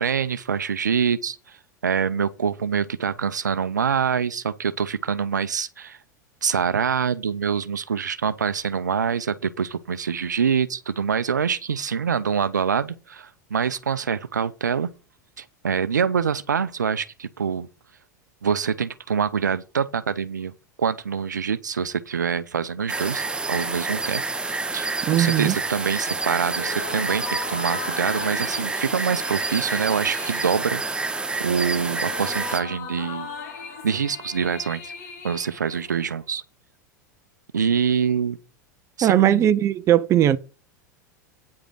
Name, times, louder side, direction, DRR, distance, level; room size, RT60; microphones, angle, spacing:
voice 1, 0.0-1.6 1.8-6.0 6.4-14.9 15.4-17.7 18.4-20.5 20.8-23.2 23.5-24.2 24.5-30.8 31.4-33.3 33.8-34.9 35.2-36.4 37.5-38.4 39.0-39.4, right 7 dB, 75° right, 0.7 m, -25 dB
sound 1, 22.9-32.6, right 3 dB, 10° right, 1.0 m, -28 dB
voice 2, 25.1-25.6 39.0-40.4, right 11 dB, 30° right, 0.6 m, -19 dB
sound 2, 26.5-36.2, left 5 dB, 60° left, 2.1 m, -38 dB
9.4 x 5.0 x 7.5 m
figure-of-eight pair, 85°, 10 cm